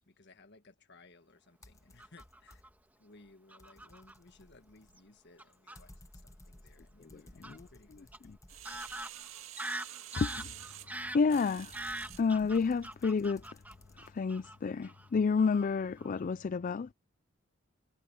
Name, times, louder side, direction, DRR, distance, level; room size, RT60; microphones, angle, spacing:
voice 1, 0.1-2.6 3.0-5.9 6.2-8.1, left 3 dB, 60° left, 1.6 m, -60 dB
sound 1, 1.6-2.9 3.3-9.4 10.9-14.2, left 1 dB, 15° left, 1.1 m, -58 dB
Fowl / Bird vocalization bird call bird song, 2.0-2.7 3.5-4.1 5.0-5.1 5.4-5.8 7.4-7.6 8.1-8.2 8.6-14.6 14.8-15.1 15.4-15.7 16.0-16.2, right 1 dB, 10° right, 1.6 m, -43 dB
voice 2, 7.0-8.4 10.2-10.5 11.1-11.8 12.2-13.4 14.0-16.9, left 5 dB, 40° left, 0.4 m, -30 dB
sound 2, 8.5-12.2 12.8-12.9, right 12 dB, 80° right, 2.2 m, -48 dB
head